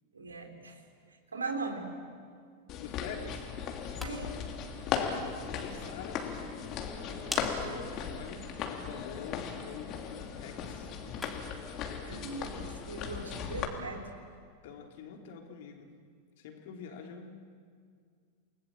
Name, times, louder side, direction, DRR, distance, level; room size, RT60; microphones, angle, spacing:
voice 1, 0.1-0.8 1.3-1.9 4.0-4.4 12.0-14.0, right 3 dB, 75° right, 5 dB, 3.4 m, -39 dB
sound 1, 2.7-13.6, left 7 dB, 35° left, 3.0 m, -37 dB
voice 2, 2.8-3.5 4.9-6.3 7.2-10.1 10.3-10.9 14.6-15.9 16.4-17.3, left 6 dB, 50° left, 3 dB, 3.2 m, -46 dB
sound 2, 3.7-11.6, left 2 dB, 5° left, 3.2 m, -49 dB
29.5 x 20.0 x 7.6 m, 2.1 s
figure-of-eight pair, 90°, 0 cm